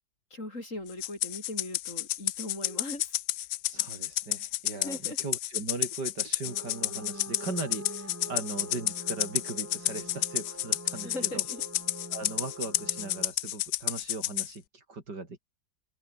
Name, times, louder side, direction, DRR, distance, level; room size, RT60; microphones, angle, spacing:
voice 1, 0.3-3.1 4.7-5.2 10.9-11.6, left 2 dB, 40° left, 7.5 m, -39 dB
Rattle (instrument), 1.0-14.5, left 15 dB, 75° left, 1.1 m, -31 dB
voice 2, 3.7-11.4 12.1-15.4, right 3 dB, 65° right, 4.8 m, -39 dB
sound 1, 6.4-13.3, right 1 dB, 10° right, 2.2 m, -44 dB
omnidirectional pair, 2.0 m